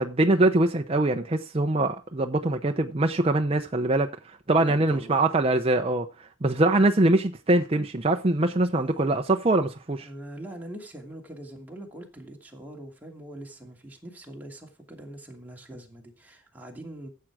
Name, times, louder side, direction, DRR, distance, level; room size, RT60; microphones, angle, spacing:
voice 1, 0.0-10.1, right 2 dB, 30° right, 0.7 m, -23 dB
voice 2, 4.5-5.2 8.7-9.0 10.0-17.1, right 1 dB, 10° right, 2.6 m, -43 dB
13.5 x 7.6 x 4.8 m
head